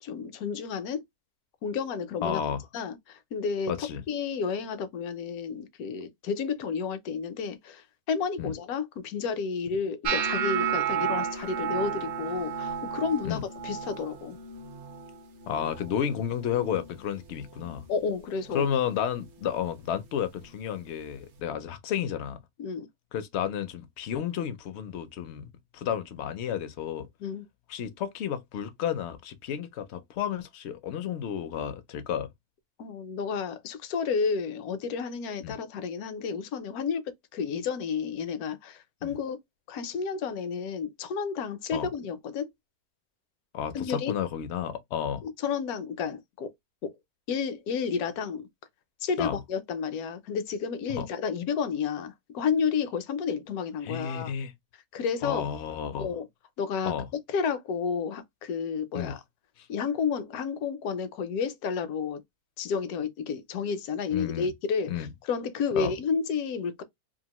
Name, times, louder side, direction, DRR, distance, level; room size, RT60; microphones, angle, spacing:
voice 1, 0.0-1.0 1.6-2.4 2.7-14.4 17.9-18.7 22.6-22.9 27.2-27.5 32.8-37.0 37.3-39.4 39.7-42.5 43.7-44.1 45.2-46.5 46.8-46.9 47.3-48.5 49.0-54.3 54.9-55.4 56.0-56.3 56.6-56.9 57.3-59.2 59.7-62.2 62.6-66.8, left 6 dB, 80° left, 1.1 m, -31 dB
voice 2, 2.2-2.6 3.7-4.0 8.4-8.5 13.2-13.5 15.5-17.8 18.5-22.4 23.1-27.1 27.7-32.3 35.4-35.6 39.0-39.2 41.7-41.9 43.5-45.2 49.2-49.4 50.9-51.1 53.8-54.5 55.2-56.1 56.9-57.1 58.9-59.2 59.6-59.7 64.1-64.5 64.9-65.1 65.8-65.9, left 9 dB, 65° left, 0.7 m, -32 dB
sound 1, 10.0-16.1 16.4-16.9 17.3-17.8 18.5-18.7 20.4-20.5, right 7 dB, 60° right, 0.8 m, -32 dB
2.8 x 2.4 x 2.9 m
omnidirectional pair, 1.6 m